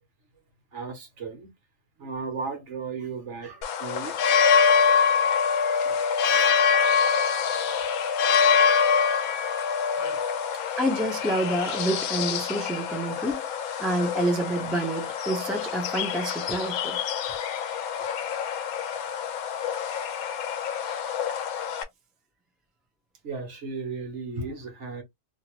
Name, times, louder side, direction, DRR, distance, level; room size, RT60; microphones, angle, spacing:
voice 1, 0.7-1.5 2.0-4.4 5.7-6.7 8.7-8.8 9.9-10.2 23.2-25.0, right 4 dB, 55° right, 1.1 m, -36 dB
sound 1, 3.6-21.8, left 6 dB, 75° left, 1.0 m, -25 dB
voice 2, 10.8-13.4 13.8-17.0, right 1 dB, ahead, 0.5 m, -28 dB
2.8 x 2.5 x 2.9 m
omnidirectional pair, 1.6 m